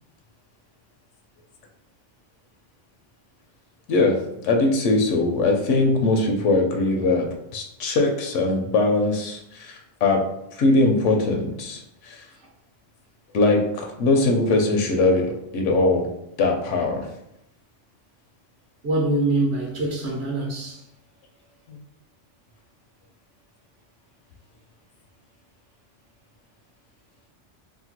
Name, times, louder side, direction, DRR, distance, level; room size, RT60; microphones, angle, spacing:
voice 1, 4.4-10.2 10.5-12.3 13.3-16.1 16.4-17.1 21.7-21.8, left 2 dB, 85° left, 0.9 m, -21 dB
voice 2, 18.8-20.8, right 2 dB, 50° right, 0.8 m, -24 dB
2.9 x 2.2 x 2.8 m
omnidirectional pair, 1.2 m